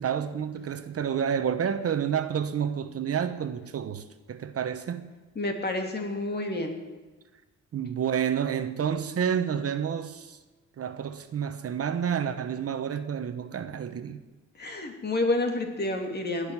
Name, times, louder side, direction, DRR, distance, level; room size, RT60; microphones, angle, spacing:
voice 1, 0.0-5.1 7.7-10.4 10.8-14.2, right 8 dB, 50° right, 10 dB, 1.1 m, -29 dB
voice 2, 5.3-6.8 14.6-16.5, left 2 dB, 35° left, 4 dB, 3.0 m, -29 dB
20.0 x 6.6 x 9.6 m, 1.3 s
cardioid pair, 90°, 30 cm